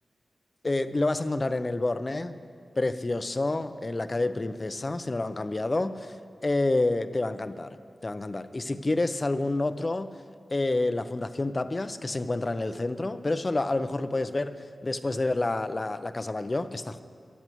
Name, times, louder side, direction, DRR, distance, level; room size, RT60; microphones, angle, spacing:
voice 1, 0.6-2.4 2.8-6.1 6.4-7.8 8.0-10.1 10.5-17.0, left 2 dB, 35° left, 11 dB, 0.6 m, -28 dB
23.0 x 12.0 x 3.1 m, 2.3 s
wide cardioid pair, 75°, 0 cm